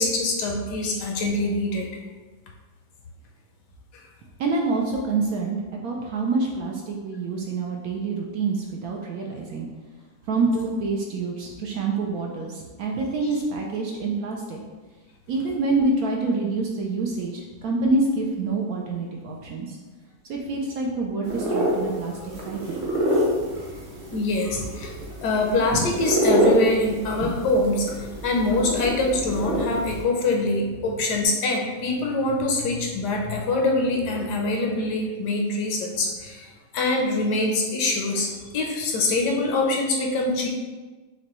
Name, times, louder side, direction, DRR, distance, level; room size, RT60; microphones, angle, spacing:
voice 1, 0.0-1.9 3.9-4.0 24.1-24.9 25.2-40.5, left 2 dB, 75° left, 0 dB, 1.2 m, -24 dB
voice 2, 4.4-9.7 10.3-14.6 15.3-19.8 20.3-22.1 22.4-22.8, right 3 dB, 70° right, -1 dB, 0.9 m, -26 dB
sound 1, 21.2-30.0, equal, 45° right, 0.6 m, -26 dB
6.5 x 2.2 x 3.0 m, 1.3 s
omnidirectional pair, 1.9 m